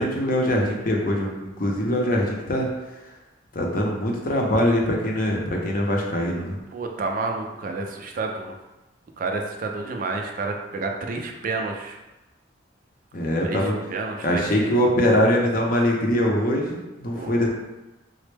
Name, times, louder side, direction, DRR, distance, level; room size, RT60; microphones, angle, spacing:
voice 1, 0.0-2.7 3.5-6.6 13.1-13.7 14.2-17.5, equal, 50° left, -1 dB, 0.6 m, -22 dB
voice 2, 6.7-8.5 9.2-12.0 13.4-14.8 17.1-17.5, right 3 dB, 45° right, 3 dB, 0.3 m, -30 dB
4.1 x 2.1 x 3.2 m, 1.1 s
head